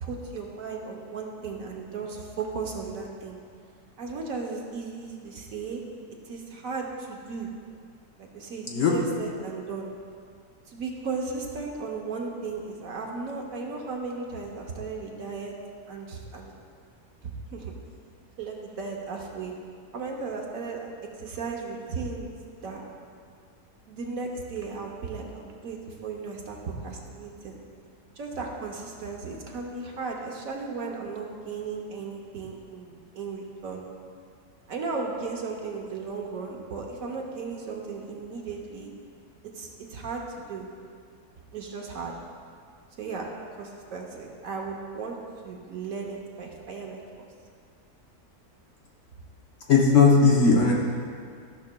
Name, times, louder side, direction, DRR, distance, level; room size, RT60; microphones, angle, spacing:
voice 1, 0.0-3.4 4.0-5.8 6.2-7.5 8.2-9.9 10.7-15.5 15.9-16.5 17.2-17.8 18.4-19.5 19.9-20.9 21.2-22.3 22.6-22.9 23.9-27.6 28.2-33.9 34.7-38.9 39.5-40.7 41.5-42.1 43.0-43.3 43.6-45.2 45.4-47.3, right 4 dB, 65° right, 0 dB, 1.2 m, -35 dB
voice 2, 49.7-50.7, left 4 dB, 55° left, -2 dB, 1.1 m, -18 dB
13.5 x 6.1 x 2.2 m, 2.2 s
omnidirectional pair, 1.7 m